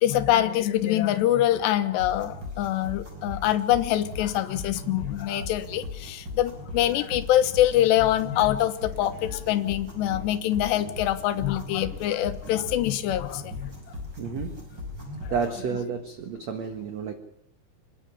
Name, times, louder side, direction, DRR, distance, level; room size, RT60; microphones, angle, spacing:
voice 1, 0.0-13.7 15.2-15.3, left 13 dB, 80° left, 10 dB, 3.2 m, -24 dB
sound 1, 2.0-15.6, left 2 dB, 25° right, 5.3 m, -38 dB
sound 2, 8.3-13.5, right 1 dB, 45° right, 9.4 m, -50 dB
voice 2, 14.2-14.6 15.3-17.1, right 6 dB, 65° right, 7 dB, 1.7 m, -31 dB
28.0 x 11.0 x 10.0 m, 0.73 s
omnidirectional pair, 5.2 m